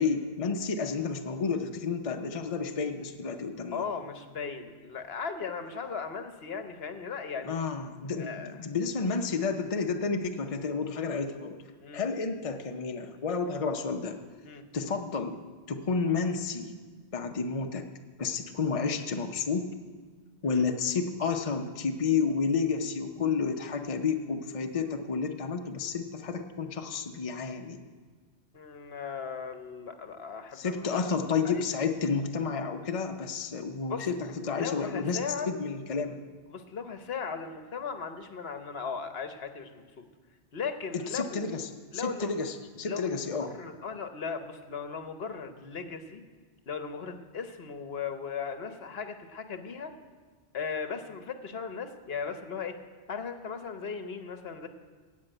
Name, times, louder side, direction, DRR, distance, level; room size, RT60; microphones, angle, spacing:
voice 1, 0.0-3.8 7.4-11.6 11.9-14.2 14.7-15.4 15.7-16.8 17.1-17.9 18.2-19.7 20.4-27.9 30.5-36.1 40.9-41.7 41.9-43.5, left 5 dB, 35° left, 4 dB, 0.7 m, -31 dB
voice 2, 3.7-7.6 8.2-8.5 11.8-12.0 14.4-14.6 20.5-20.6 28.5-31.1 31.4-31.6 33.8-34.1 34.5-35.5 36.5-40.1 40.5-41.5 41.9-42.3 42.8-43.0 43.4-46.2 46.7-49.9 50.5-52.7 53.1-54.7, left 5 dB, 65° left, 7 dB, 1.1 m, -37 dB
16.0 x 5.4 x 8.9 m, 1.5 s
omnidirectional pair, 1.1 m